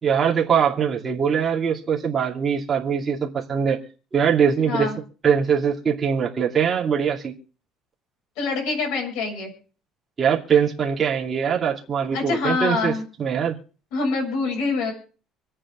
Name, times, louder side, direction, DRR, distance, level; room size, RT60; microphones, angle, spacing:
voice 1, 0.0-3.8 4.1-4.9 5.2-7.3 10.2-12.9 13.2-13.6, right 7 dB, 25° right, -3 dB, 2.6 m, -22 dB
voice 2, 4.7-5.0 8.4-9.5 12.1-13.0 13.9-14.9, left 3 dB, 80° left, 1 dB, 6.8 m, -25 dB
25.5 x 8.7 x 3.7 m, 0.39 s
cardioid pair, 165°, 0 cm